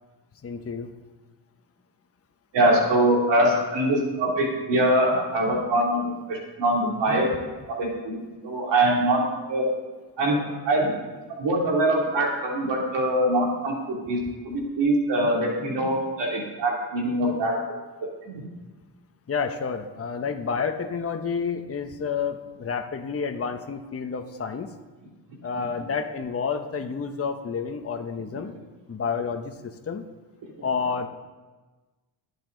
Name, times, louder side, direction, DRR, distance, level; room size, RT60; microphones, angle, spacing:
voice 1, 0.4-0.9 19.3-24.7 25.4-28.5 28.9-29.5 29.9-30.0 30.6-31.1, left 5 dB, 35° left, 5 dB, 1.0 m, -29 dB
voice 2, 2.5-7.3 7.7-9.7 10.2-10.9 11.3-14.2 14.4-17.5 18.3-18.5 25.6-25.7, right 1 dB, 85° right, -2 dB, 3.1 m, -23 dB
20.5 x 7.0 x 4.0 m, 1.3 s
cardioid pair, 80°, 42 cm